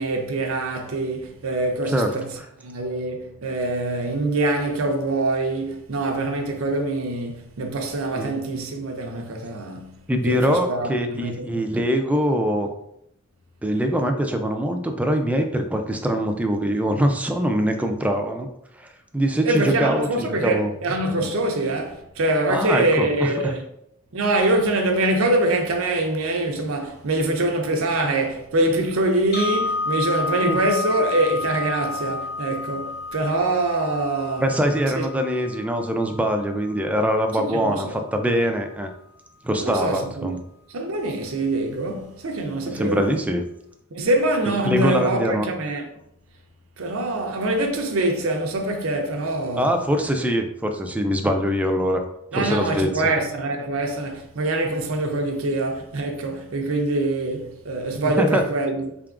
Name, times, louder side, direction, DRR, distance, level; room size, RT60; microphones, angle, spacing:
voice 1, 0.0-10.0 10.3-11.7 19.4-23.6 24.1-34.5 35.0-35.1 37.4-38.0 39.6-40.4 40.7-43.2 43.9-45.9 46.8-49.8 52.3-59.0, right 2 dB, 75° right, 0.6 m, -24 dB
voice 2, 10.1-12.7 13.6-18.5 18.8-20.7 22.5-23.3 30.4-30.6 34.4-38.9 39.4-40.4 42.6-43.4 44.5-45.5 49.6-52.0 52.3-53.0 58.0-58.4, equal, 5° right, 0.4 m, -23 dB
sound 1, 29.3-37.4, left 3 dB, 50° left, 0.8 m, -31 dB
3.8 x 3.5 x 2.4 m
head